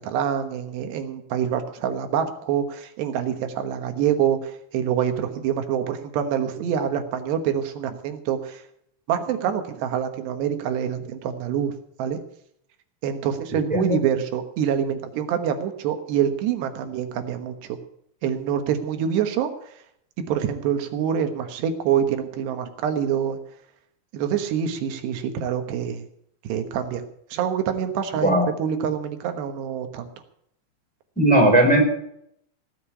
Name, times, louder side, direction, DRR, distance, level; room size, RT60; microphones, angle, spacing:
voice 1, 0.0-8.6 9.1-11.7 12.0-12.2 13.0-17.8 18.2-19.5 20.2-23.4 24.1-26.1 26.5-27.0 27.3-30.1, right 8 dB, 85° right, 7 dB, 3.4 m, -26 dB
voice 2, 13.5-14.0 28.2-28.4 31.2-31.8, right 1 dB, ahead, 0 dB, 3.4 m, -17 dB
18.0 x 6.8 x 8.4 m, 0.70 s
omnidirectional pair, 4.7 m